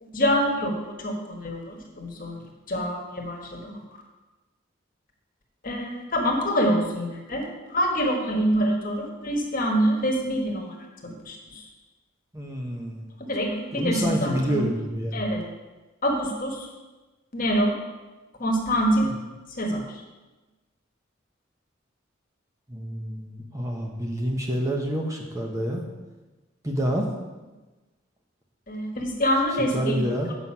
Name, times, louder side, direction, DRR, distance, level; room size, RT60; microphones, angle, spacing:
voice 1, 0.0-2.4 2.7-3.7 5.6-10.7 11.0-11.7 13.3-14.6 15.1-15.4 16.0-16.7 17.3-17.8 18.4-19.1 19.5-20.0 28.7-30.0, equal, 45° left, 1 dB, 1.4 m, -26 dB
voice 2, 12.3-13.0 13.8-15.2 19.0-19.1 22.7-25.8 26.6-27.1 29.7-30.3, equal, 15° right, 0 dB, 0.9 m, -28 dB
8.0 x 5.9 x 5.4 m, 1.2 s
head